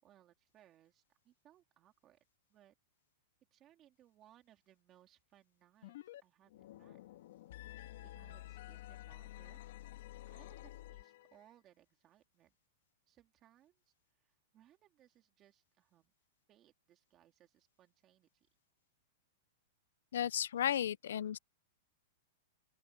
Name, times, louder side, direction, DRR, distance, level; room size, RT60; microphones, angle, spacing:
voice 1, 0.0-2.2 2.5-2.7 3.5-7.0 8.0-9.6 10.3-12.5 13.1-13.9 14.2-16.1 16.5-18.5, right 12 dB, 20° right, 3.5 m, -67 dB
sound 1, 5.8-6.2 6.5-11.4, left 15 dB, 55° left, 2.0 m, -51 dB
voice 2, 20.1-21.4, left 10 dB, 80° left, 0.4 m, -34 dB
open air
supercardioid pair, 175°, 0 cm